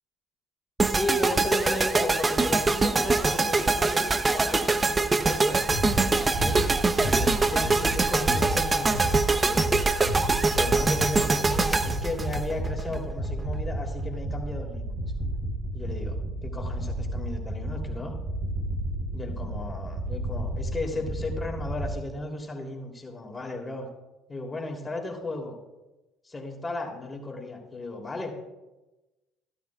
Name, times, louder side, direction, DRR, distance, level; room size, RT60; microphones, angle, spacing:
sound 1, 0.8-13.0, right 3 dB, 25° right, 0.8 m, -24 dB
voice 1, 0.9-6.6 7.0-9.8 10.5-15.0 15.7-16.2 16.4-18.2 19.1-23.9 24.3-25.6 26.2-28.4, left 2 dB, 20° left, 1 dB, 3.1 m, -35 dB
sound 2, 5.7-21.9, right 1 dB, 60° right, 4.1 m, -32 dB
15.5 x 12.5 x 2.4 m, 1.0 s
hypercardioid pair, 60°, 0 cm